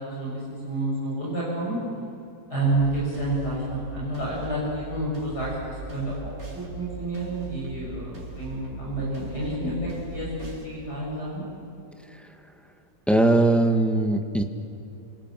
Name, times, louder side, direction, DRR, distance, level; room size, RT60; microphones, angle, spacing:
voice 1, 0.0-1.8 2.5-11.5, right 2 dB, 60° left, -6 dB, 8.3 m, -29 dB
sound 1, 3.0-10.6, right 3 dB, 65° right, 4.8 m, -39 dB
voice 2, 13.1-14.4, right 2 dB, ahead, 4 dB, 1.6 m, -20 dB
28.0 x 27.0 x 7.6 m, 2.7 s
omnidirectional pair, 1.9 m